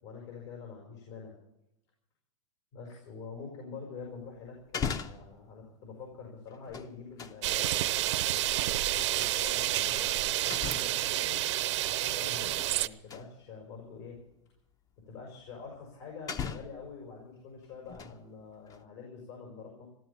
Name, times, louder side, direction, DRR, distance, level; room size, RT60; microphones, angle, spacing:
voice 1, 0.0-1.4 2.7-11.4 11.9-14.2 15.0-19.9, left 5 dB, 65° left, 0 dB, 6.0 m, -46 dB
sound 1, 4.0-4.1 4.6-5.4 6.5-7.4 9.0-9.2 10.5-11.1 12.2-12.8 13.1-13.3 14.2-14.3 15.6-15.7 16.3-16.9 17.7-18.3 18.7-18.8, left 6 dB, 25° left, 0.8 m, -38 dB
sound 2, 7.4-12.9, right 15 dB, 70° right, 0.8 m, -29 dB
15.5 x 12.5 x 7.1 m, 0.86 s
hypercardioid pair, 125°, 16 cm